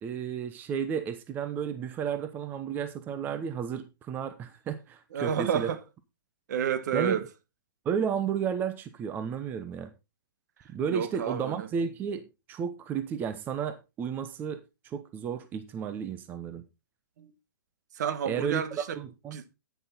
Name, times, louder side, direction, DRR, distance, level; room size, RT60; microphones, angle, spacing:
voice 1, 0.0-5.7 6.9-7.2 7.8-9.9 10.7-16.6 18.3-18.6 19.0-19.5, right 7 dB, 15° right, 0.9 m, -33 dB
voice 2, 5.1-5.8 6.5-7.2 10.9-11.7 17.2-17.3 17.9-19.0 19.3-19.4, right 8 dB, 55° right, 1.5 m, -30 dB
10.0 x 9.4 x 3.9 m
hypercardioid pair, 160°, 11 cm